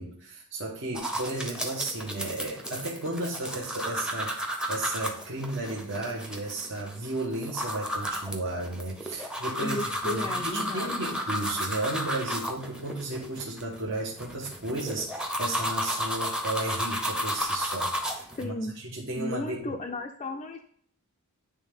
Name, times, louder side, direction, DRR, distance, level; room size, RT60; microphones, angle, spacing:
voice 1, 0.0-4.4 4.7-19.8, right 2 dB, 60° right, -2 dB, 1.0 m, -34 dB
sound 1, 0.9-18.4, equal, 5° right, 0.7 m, -33 dB
voice 2, 9.6-11.2 18.4-18.7 19.2-20.6, left 2 dB, 30° left, 1 dB, 0.4 m, -35 dB
9.7 x 3.3 x 3.5 m, 0.62 s
head